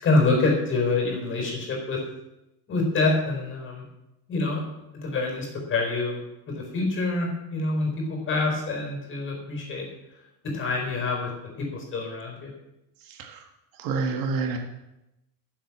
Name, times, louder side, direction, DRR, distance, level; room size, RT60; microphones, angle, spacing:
voice 1, 0.0-2.0 2.7-3.8 4.3-4.6 4.9-6.2 6.5-9.9 10.5-11.3 11.6-12.5, left 3 dB, 25° left, 1 dB, 4.7 m, -26 dB
voice 2, 13.1-13.4 13.8-14.6, right 4 dB, 50° right, 4 dB, 1.7 m, -28 dB
15.0 x 7.8 x 7.4 m, 0.92 s
cardioid pair, 175°, 44 cm